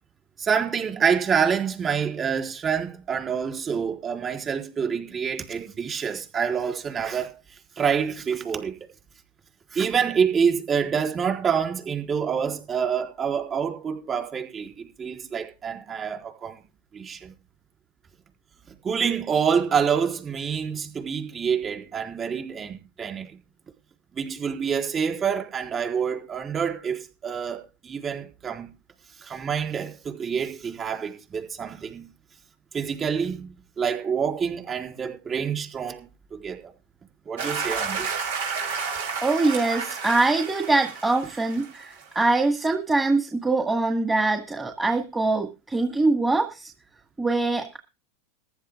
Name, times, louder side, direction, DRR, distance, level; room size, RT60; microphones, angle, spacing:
voice 1, 0.4-7.3 7.8-8.7 9.7-16.6 16.9-17.3 18.8-23.3 24.2-28.7 29.2-32.1 32.7-36.7 37.3-38.1, right 7 dB, 30° right, 4.0 m, -27 dB
sound 1, 37.4-42.1, right 5 dB, 85° right, 5.5 m, -31 dB
voice 2, 39.2-46.7 47.2-47.8, right 3 dB, 10° right, 1.8 m, -23 dB
15.0 x 11.5 x 3.7 m
hypercardioid pair, 115°, 0 cm